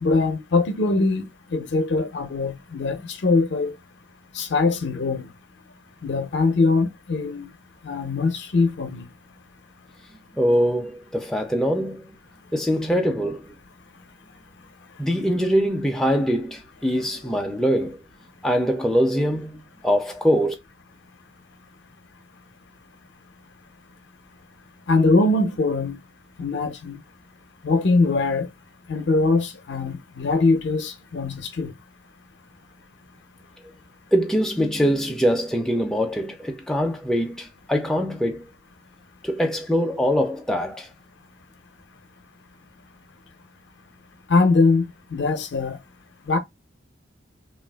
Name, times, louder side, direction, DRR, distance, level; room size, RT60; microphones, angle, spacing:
voice 1, 0.0-3.8 4.3-5.3 6.0-7.5 7.8-9.1 24.9-26.0 26.4-27.0 27.6-28.5 28.9-31.7 44.3-45.8 46.3-46.4, left 3 dB, 65° left, 0.5 m, -22 dB
voice 2, 10.4-12.2 12.5-13.5 15.0-18.0 18.4-20.5 34.1-38.4 39.2-40.9, equal, 5° left, 0.3 m, -23 dB
3.2 x 2.4 x 2.2 m
head